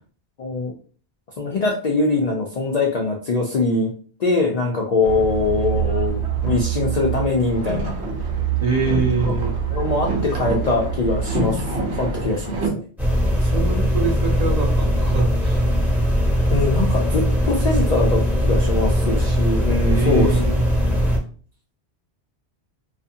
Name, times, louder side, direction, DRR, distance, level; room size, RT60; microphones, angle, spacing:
voice 1, 0.4-0.7 1.4-3.9 4.2-8.0 9.3-9.4 9.7-12.8 16.5-20.4, left 3 dB, 60° left, -1 dB, 0.4 m, -22 dB
Boat Water vehicle, 5.0-12.7, right 6 dB, 75° right, 0.9 m, -25 dB
voice 2, 8.6-9.6 13.4-15.6 19.8-20.6, right 3 dB, 45° right, -1 dB, 0.6 m, -24 dB
sound 1, 13.0-21.2, equal, ahead, 0.6 m, -20 dB
2.5 x 2.4 x 2.6 m, 0.41 s
omnidirectional pair, 1.1 m